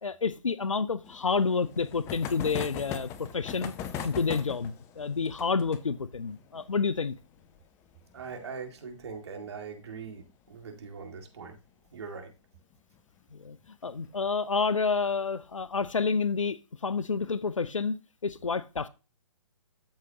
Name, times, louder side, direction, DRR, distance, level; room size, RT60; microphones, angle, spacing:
voice 1, 0.0-3.7 4.0-7.1 13.3-13.6 13.8-18.9, left 5 dB, 85° left, 0.6 m, -29 dB
sound 1, 1.0-10.3 10.5-10.6 10.8-10.9 11.2-11.3 12.7-13.0 13.7-14.1, left 8 dB, 15° left, 0.7 m, -41 dB
voice 2, 8.1-11.6 11.9-12.3, right 5 dB, 55° right, 2.2 m, -41 dB
13.0 x 4.8 x 2.9 m
figure-of-eight pair, 135°, 16 cm